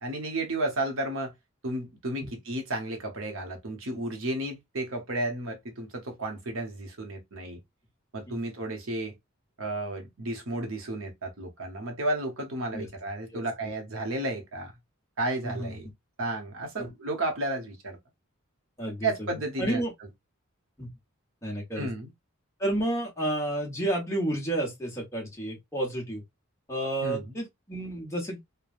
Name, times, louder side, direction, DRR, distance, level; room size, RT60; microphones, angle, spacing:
voice 1, 0.0-1.3 1.6-7.6 8.1-9.1 9.6-14.7 15.2-15.9 16.2-18.0 19.0-19.8 21.8-22.1 27.0-27.3, right 2 dB, 70° right, 1.0 m, -32 dB
voice 2, 15.4-15.8 16.8-16.9 18.8-19.3 19.6-19.9 20.8-20.9 21.4-21.9 22.6-26.2 26.7-28.4, right 1 dB, 15° left, 1.1 m, -31 dB
3.2 x 2.2 x 2.4 m
head